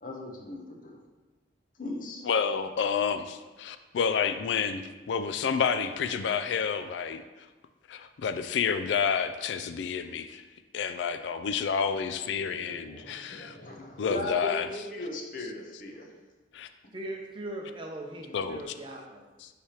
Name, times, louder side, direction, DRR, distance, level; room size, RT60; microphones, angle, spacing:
voice 1, 0.0-1.0 1.8-2.2 12.4-16.1, left 1 dB, 45° left, 0 dB, 0.8 m, -38 dB
voice 2, 2.2-4.8 5.1-7.2 7.9-10.4 10.7-14.7 16.5-16.7 18.3-18.7 19.4-19.5, left 6 dB, 80° left, 10 dB, 0.3 m, -29 dB
voice 3, 16.9-19.3, right 1 dB, 30° right, 1 dB, 0.7 m, -39 dB
10.0 x 3.3 x 2.9 m, 1.2 s
head